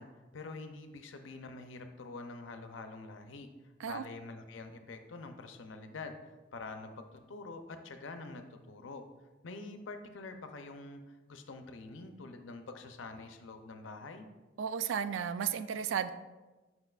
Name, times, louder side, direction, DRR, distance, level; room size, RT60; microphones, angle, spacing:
voice 1, 0.0-3.5 3.8-9.0 9.4-14.3, left 3 dB, 80° left, 7 dB, 0.6 m, -46 dB
voice 2, 14.6-16.1, right 7 dB, 75° right, 12 dB, 0.3 m, -34 dB
7.8 x 5.6 x 2.4 m, 1.2 s
head